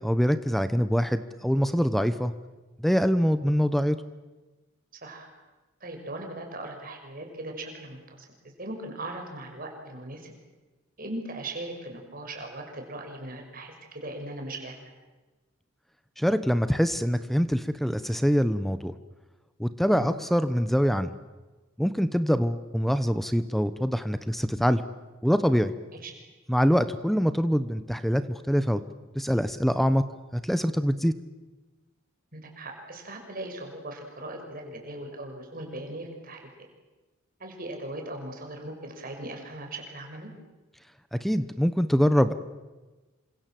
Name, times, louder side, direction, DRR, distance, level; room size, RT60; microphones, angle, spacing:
voice 1, 0.0-2.3 2.8-4.0 16.2-18.9 19.6-21.1 21.8-24.8 25.2-25.7 26.5-28.8 29.1-30.1 30.3-31.2 41.1-42.3, equal, ahead, 12 dB, 0.9 m, -24 dB
voice 2, 5.8-8.3 8.6-10.3 11.0-14.8 19.9-20.1 26.0-26.1 32.3-36.4 37.4-40.3, right 1 dB, 45° right, 3 dB, 6.0 m, -39 dB
28.0 x 26.0 x 7.7 m, 1.2 s
head